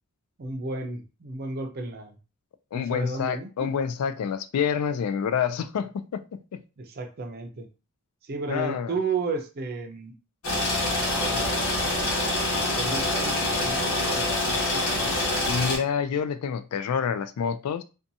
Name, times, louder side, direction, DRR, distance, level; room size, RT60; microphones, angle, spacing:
voice 1, 0.4-2.2 2.7-3.7 6.8-7.7 8.2-10.2 11.2-11.6 12.7-15.4, right 3 dB, 45° right, 0.5 m, -33 dB
voice 2, 2.7-6.6 8.5-8.9 15.5-17.8, left 7 dB, 90° left, 0.3 m, -28 dB
sound 1, 10.4-15.8, left 2 dB, 75° left, 1.2 m, -25 dB
2.6 x 2.3 x 2.6 m
head